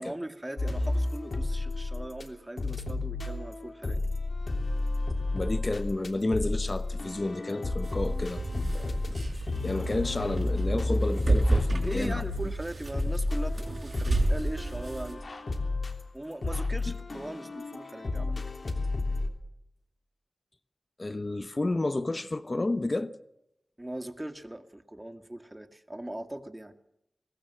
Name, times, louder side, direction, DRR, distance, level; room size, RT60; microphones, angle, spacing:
voice 1, 0.0-4.0 11.7-15.2 16.1-18.4 23.8-26.7, right 1 dB, 20° right, 2.1 m, -39 dB
sound 1, 0.6-2.3 2.6-19.3, left 2 dB, 60° left, 3.1 m, -31 dB
voice 2, 5.3-9.0 9.3-12.2 21.0-23.1, left 2 dB, 40° left, 1.0 m, -31 dB
sound 2, 7.8-15.1, right 2 dB, 55° right, 6.1 m, -32 dB
22.5 x 20.5 x 7.5 m
wide cardioid pair, 55°, 0 cm